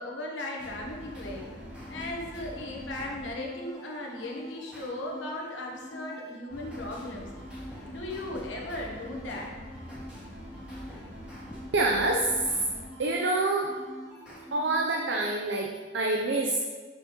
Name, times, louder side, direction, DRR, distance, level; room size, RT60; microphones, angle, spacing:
voice 1, 0.0-1.5 1.9-7.3 7.9-9.5, left 1 dB, 85° left, -1 dB, 1.2 m, -37 dB
sound 1, 0.6-15.3, equal, 5° right, 1.9 m, -43 dB
voice 2, 11.7-12.7 13.0-13.7 14.5-16.6, right 2 dB, 75° right, 0 dB, 0.6 m, -26 dB
6.6 x 6.0 x 3.0 m, 1.4 s
head